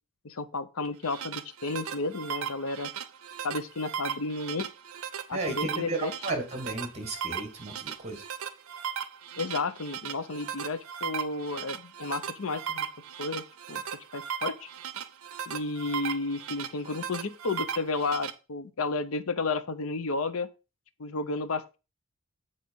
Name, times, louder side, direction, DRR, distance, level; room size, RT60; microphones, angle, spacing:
voice 1, 0.2-2.9 3.4-4.7 5.3-6.1 9.4-12.9 13.2-13.8 14.1-14.7 15.5-20.5 21.0-21.8, left 3 dB, 65° left, 0.7 m, -32 dB
sound 1, 0.8-18.3, right 8 dB, 65° right, 0.6 m, -37 dB
voice 2, 5.3-8.2, right 2 dB, 30° right, 1.9 m, -34 dB
7.8 x 3.9 x 5.3 m
head